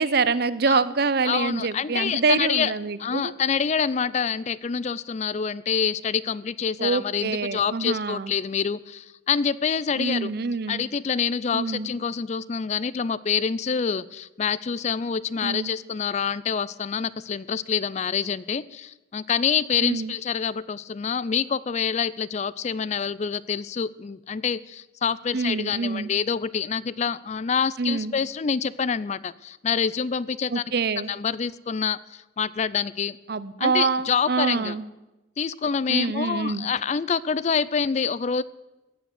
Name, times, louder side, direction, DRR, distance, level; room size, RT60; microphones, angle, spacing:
voice 1, 0.0-3.3 6.8-8.3 10.0-10.8 11.5-11.9 15.4-15.7 19.8-20.1 25.3-26.1 27.8-28.1 30.5-31.1 33.3-34.8 35.9-36.7, right 4 dB, 55° right, 16 dB, 0.7 m, -25 dB
voice 2, 1.2-2.7 3.0-10.3 10.7-30.6 31.1-33.2 33.6-34.8 35.4-38.4, left 6 dB, 35° left, 19 dB, 0.4 m, -26 dB
15.5 x 9.2 x 7.9 m, 1.0 s
head